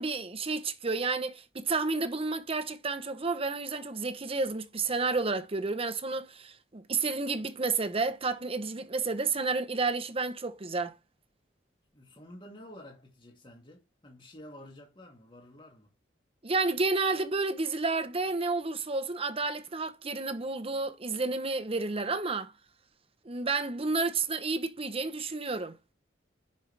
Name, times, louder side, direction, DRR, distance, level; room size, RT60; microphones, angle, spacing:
voice 1, 0.0-10.9 16.4-22.5 23.2-25.8, right 3 dB, 30° right, 0.9 m, -31 dB
voice 2, 11.9-15.9, left 1 dB, 25° left, 2.3 m, -50 dB
10.0 x 5.5 x 3.4 m
head